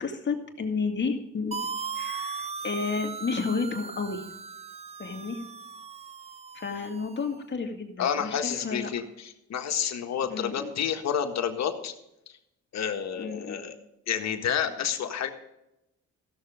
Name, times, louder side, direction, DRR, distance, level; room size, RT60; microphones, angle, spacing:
voice 1, 0.0-1.5 1.9-4.2 5.0-5.4 6.5-8.9 10.3-10.7 13.2-13.6, left 4 dB, 35° left, 4 dB, 2.1 m, -31 dB
sound 1, 1.5-7.3, right 5 dB, 20° right, 0.4 m, -38 dB
voice 2, 8.0-11.9 12.7-13.8 14.1-15.3, left 8 dB, 60° left, 5 dB, 1.6 m, -29 dB
16.0 x 6.7 x 5.0 m, 0.86 s
cardioid pair, 85°, 30 cm